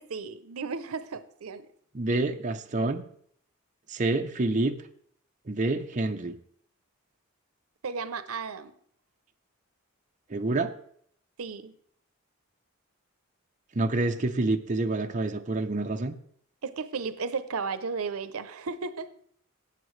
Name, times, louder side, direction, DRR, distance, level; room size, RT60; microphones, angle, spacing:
voice 1, 0.0-1.7 7.8-8.7 11.4-11.7 16.6-19.1, right 5 dB, 85° right, 0.6 m, -34 dB
voice 2, 1.9-3.0 3.9-4.8 5.5-6.3 10.3-10.7 13.7-16.1, right 2 dB, 35° right, 0.6 m, -27 dB
17.5 x 7.8 x 3.2 m
head